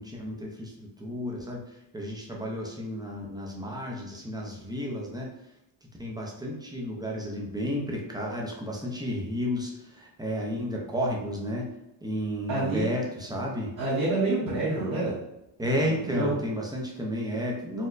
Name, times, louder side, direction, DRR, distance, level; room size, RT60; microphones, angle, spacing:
voice 1, 0.0-5.3 5.8-11.7 12.0-13.7 15.6-17.9, equal, 10° right, -2 dB, 0.4 m, -32 dB
voice 2, 12.5-12.9 13.8-15.1 15.6-16.3, right 2 dB, 40° right, -8 dB, 0.9 m, -28 dB
4.2 x 2.1 x 2.4 m, 0.89 s
cardioid pair, 145°, 46 cm